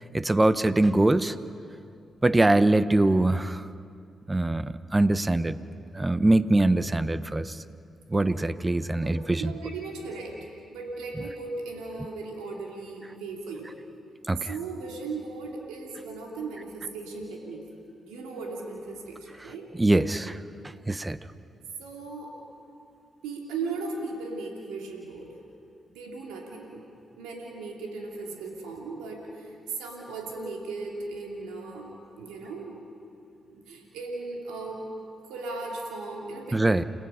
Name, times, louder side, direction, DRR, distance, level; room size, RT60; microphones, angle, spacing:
voice 1, 0.1-1.3 2.2-3.6 4.3-5.6 5.9-7.5 8.1-9.5 14.3-14.5 19.8-20.4 20.9-21.2 36.5-36.8, right 2 dB, 20° right, 14 dB, 1.0 m, -23 dB
voice 2, 9.0-10.4 10.7-13.7 14.4-17.6 18.0-19.7 20.7-20.8 21.8-22.3 23.2-25.4 25.9-26.8 27.2-32.7 33.5-34.8 35.3-36.6, right 3 dB, 90° right, -1 dB, 2.7 m, -37 dB
29.5 x 18.0 x 5.7 m, 2.4 s
supercardioid pair, 45°, 0 cm